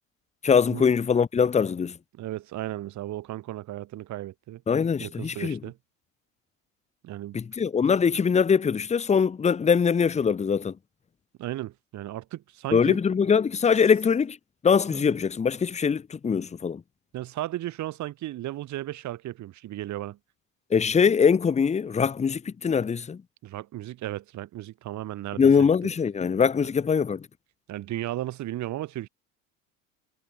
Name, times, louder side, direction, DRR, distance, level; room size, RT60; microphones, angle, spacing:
voice 1, 0.4-1.9 4.7-5.6 7.3-10.7 12.7-14.4 14.6-16.8 20.7-23.2 25.4-27.3, left 6 dB, 15° left, 0.9 m, -22 dB
voice 2, 2.1-4.6 5.0-5.8 7.0-7.4 11.4-13.0 14.9-15.2 17.1-20.2 23.4-25.7 27.7-29.1, right 14 dB, 45° right, 1.5 m, -35 dB
hypercardioid pair, 80°, 40 cm